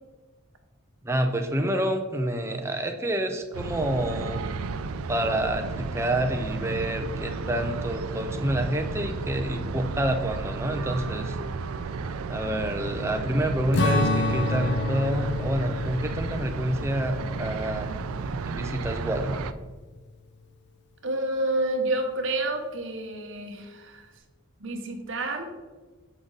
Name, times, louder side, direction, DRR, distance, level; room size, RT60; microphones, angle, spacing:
voice 1, 1.0-4.7 5.1-11.4 12.3-19.4, right 1 dB, 10° right, 5 dB, 0.5 m, -28 dB
sound 1, 3.5-19.5, right 4 dB, 85° right, 0.4 m, -33 dB
Strum, 13.7-18.4, left 2 dB, 50° left, 0.6 m, -29 dB
voice 2, 21.0-24.1 24.6-25.5, right 2 dB, 60° right, 3 dB, 1.0 m, -29 dB
7.7 x 5.0 x 4.0 m, 1.3 s
head